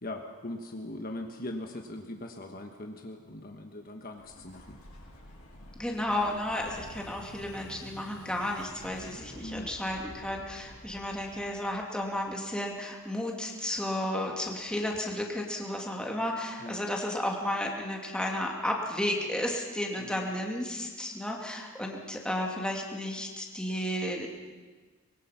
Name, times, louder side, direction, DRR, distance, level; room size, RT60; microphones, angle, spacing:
voice 1, 0.0-4.8 9.4-9.7 16.6-16.8 19.9-20.3, left 1 dB, 40° left, 3 dB, 1.4 m, -40 dB
Explosion, 4.2-12.8, left 1 dB, 85° left, 6.5 m, -49 dB
voice 2, 5.8-24.3, left 1 dB, 5° left, 0 dB, 2.5 m, -33 dB
24.0 x 22.0 x 5.9 m, 1.4 s
head